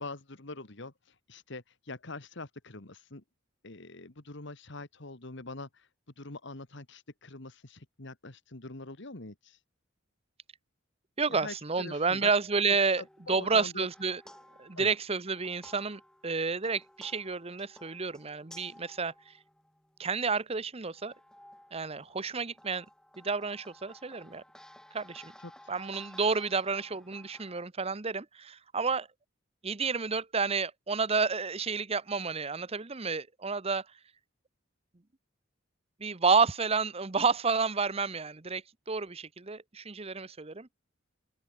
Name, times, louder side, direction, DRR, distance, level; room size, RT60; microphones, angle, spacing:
voice 1, 0.0-3.2 3.6-5.9 6.2-9.6 11.3-12.3 12.7-13.9 14.7-14.9 25.4-25.7, left 2 dB, 60° left, 1.9 m, -44 dB
voice 2, 11.2-13.0 13.3-14.2 14.6-19.3 20.0-21.1 21.7-22.8 23.2-24.4 24.9-25.3 25.7-29.1 29.6-33.8 36.0-40.7, right 4 dB, 30° right, 0.9 m, -30 dB
sound 1, 12.7-20.1 20.8-27.6, left 1 dB, 5° left, 1.4 m, -56 dB
open air
head